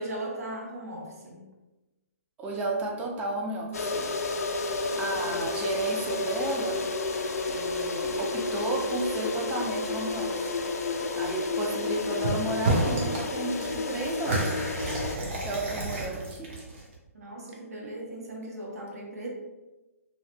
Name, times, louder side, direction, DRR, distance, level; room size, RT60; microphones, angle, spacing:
voice 1, 0.0-1.5 4.9-5.4 17.1-19.3, right 1 dB, 75° right, -2 dB, 1.0 m, -38 dB
voice 2, 2.4-4.1 5.0-6.8 7.5-10.5 10.9-14.5 15.4-16.6 17.8-17.9, right 2 dB, 15° right, 0 dB, 0.4 m, -33 dB
sound 1, 3.7-15.2, left 3 dB, 80° left, 0.4 m, -31 dB
sound 2, 12.2-12.4 12.6-13.3 13.6-16.9, right 2 dB, 45° right, 0.8 m, -30 dB
2.7 x 2.0 x 3.2 m, 1.1 s
hypercardioid pair, 145°, 8 cm